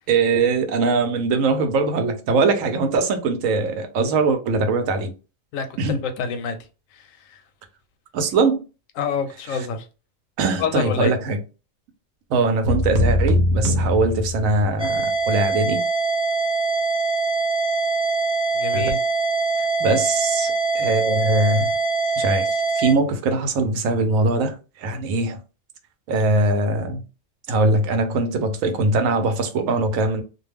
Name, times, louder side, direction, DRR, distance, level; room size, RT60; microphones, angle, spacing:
voice 1, 0.1-5.1 5.8-6.0 8.1-8.6 10.4-11.4 12.3-15.8 18.7-18.8 19.6-21.7 22.2-22.5 22.7-25.4 26.1-27.0 27.5-30.2, right 3 dB, 90° right, 1.0 m, -21 dB
voice 2, 5.5-6.6 6.9-7.4 9.0-9.9 10.6-11.2 18.5-19.0, left 5 dB, 85° left, 1.0 m, -27 dB
sound 1, 12.6-14.9, left 1 dB, 65° right, 0.9 m, -21 dB
sound 2, 14.8-22.9, right 3 dB, 5° right, 0.6 m, -23 dB
2.5 x 2.2 x 3.3 m
omnidirectional pair, 1.3 m